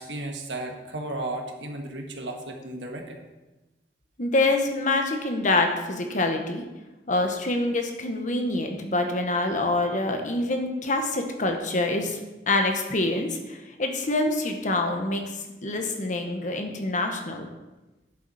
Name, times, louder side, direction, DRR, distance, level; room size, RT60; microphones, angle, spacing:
voice 1, 0.0-3.2, right 2 dB, 85° right, 2 dB, 1.6 m, -34 dB
voice 2, 4.2-6.6 7.1-12.2 12.5-15.2 15.6-17.5, left 2 dB, 45° left, 4 dB, 1.3 m, -26 dB
10.5 x 8.1 x 4.3 m, 1.1 s
head